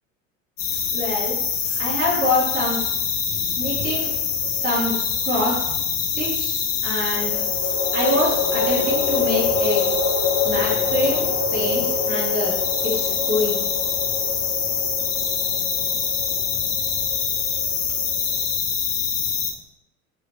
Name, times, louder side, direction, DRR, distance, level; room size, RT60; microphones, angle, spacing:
sound 1, 0.6-19.5, left 7 dB, 65° left, 0.7 m, -24 dB
voice 1, 0.9-1.4 1.8-2.8 3.6-4.1 4.5-4.9 5.2-5.6 6.0-6.6 6.8-7.4 7.9-9.8 10.4-12.5 12.8-13.6, left 1 dB, 20° right, -7 dB, 1.3 m, -25 dB
sound 2, 4.1-4.9 7.1-18.5, left 4 dB, 30° left, 0.5 m, -27 dB
4.3 x 2.8 x 2.6 m, 0.85 s
figure-of-eight pair, 75°, 39 cm